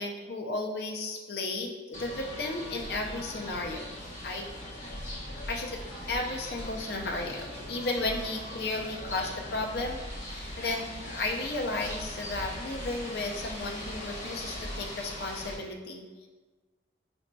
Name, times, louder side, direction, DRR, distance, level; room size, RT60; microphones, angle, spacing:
voice 1, 0.0-3.8 4.2-4.5 5.3-10.0 10.2-16.3, left 2 dB, 55° left, 2 dB, 0.4 m, -34 dB
sound 1, 1.9-15.6, left 1 dB, 40° left, 0.9 m, -40 dB
5.1 x 2.6 x 2.2 m, 1.3 s
head